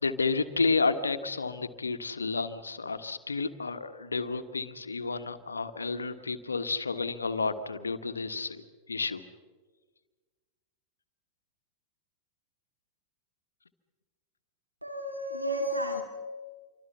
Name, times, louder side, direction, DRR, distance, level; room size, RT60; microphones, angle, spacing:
voice 1, 0.0-9.2, left 4 dB, 75° left, 11 dB, 1.5 m, -31 dB
voice 2, 14.8-16.0, equal, 85° right, 3 dB, 2.3 m, -32 dB
28.0 x 24.5 x 5.7 m, 1.4 s
figure-of-eight pair, 90°, 0 cm